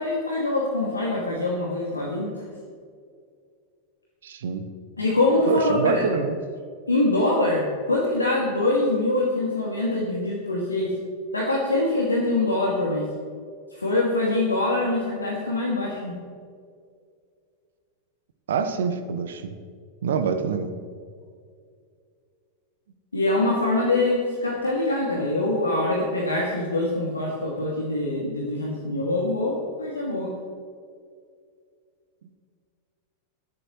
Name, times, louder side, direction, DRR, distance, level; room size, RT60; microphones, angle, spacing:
voice 1, 0.0-2.3 5.0-6.0 6.9-10.9 11.3-13.1 13.8-16.2 23.1-30.3, left 2 dB, 80° left, -3 dB, 2.3 m, -24 dB
voice 2, 4.2-4.7 5.5-6.4 18.5-19.6 20.0-20.7, right 6 dB, 60° right, 9 dB, 1.2 m, -25 dB
20.5 x 12.5 x 3.1 m, 2.2 s
figure-of-eight pair, 90°, 0 cm